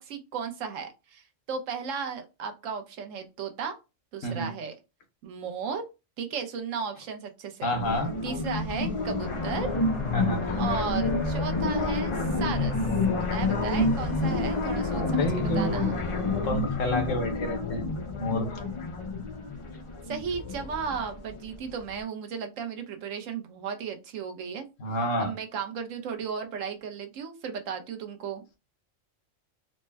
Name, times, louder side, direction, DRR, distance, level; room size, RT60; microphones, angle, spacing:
voice 1, 0.0-3.8 4.1-4.7 5.2-5.8 6.2-7.7 8.2-9.8 10.5-12.1 12.4-12.7 13.3-16.0 20.1-24.7 25.2-28.6, right 6 dB, 75° right, 1.0 m, -35 dB
voice 2, 7.6-8.1 10.1-10.4 15.2-15.7 16.4-17.9 18.2-18.6 24.8-25.3, left 1 dB, 75° left, 1.3 m, -29 dB
sound 1, 7.7-21.5, left 3 dB, 45° left, 0.4 m, -29 dB
sound 2, 9.2-16.5, left 1 dB, 25° left, 0.9 m, -40 dB
4.1 x 2.1 x 3.3 m
omnidirectional pair, 1.3 m